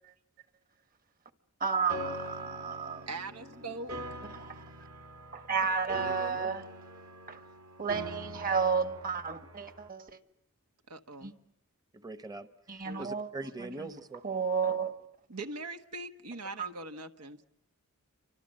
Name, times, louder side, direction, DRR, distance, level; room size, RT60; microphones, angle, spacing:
voice 1, 1.6-3.1 4.3-4.6 5.3-6.7 7.3-7.4 7.8-10.2 11.2-11.3 12.7-13.3 13.6-13.9 14.2-15.0 16.6-16.7, right 5 dB, 40° right, 1.6 m, -32 dB
Piano, 1.9-9.9, right 1 dB, 70° right, 2.3 m, -44 dB
voice 2, 3.1-3.9 10.9-11.3 12.8-13.1 15.3-17.4, right 2 dB, 90° right, 1.3 m, -41 dB
voice 3, 6.0-6.5 11.9-14.2, right 2 dB, 20° right, 1.0 m, -43 dB
29.0 x 25.0 x 7.7 m
head